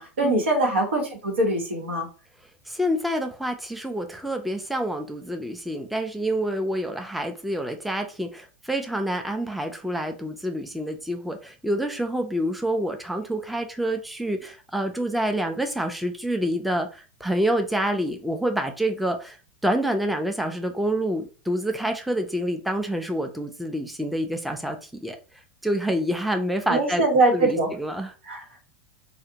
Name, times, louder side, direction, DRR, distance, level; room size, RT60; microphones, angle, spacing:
voice 1, 0.0-2.1 26.7-27.7 28.2-28.4, right 2 dB, 85° right, 1.0 m, -22 dB
voice 2, 2.7-19.4 19.6-25.2 25.6-27.0 27.3-28.1, right 1 dB, ahead, 0.4 m, -27 dB
2.4 x 2.1 x 2.8 m
hypercardioid pair, 100°, 6 cm